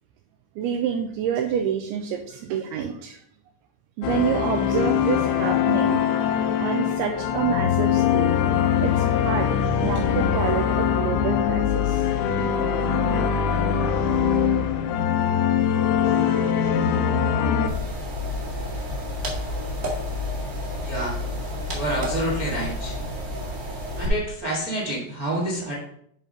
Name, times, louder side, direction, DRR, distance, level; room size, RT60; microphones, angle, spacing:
voice 1, 0.6-3.2 4.0-6.0 6.6-8.4 8.8-12.1, right 8 dB, 85° right, 4 dB, 2.3 m, -28 dB
sound 1, 4.0-17.7, left 8 dB, 85° left, 3.0 m, -22 dB
sound 2, 17.7-24.1, left 1 dB, 35° right, 1.5 m, -30 dB
voice 2, 20.8-21.2 21.7-23.0 23.9-25.7, right 1 dB, 65° right, -5 dB, 0.9 m, -28 dB
9.9 x 3.6 x 5.2 m, 0.67 s
omnidirectional pair, 5.0 m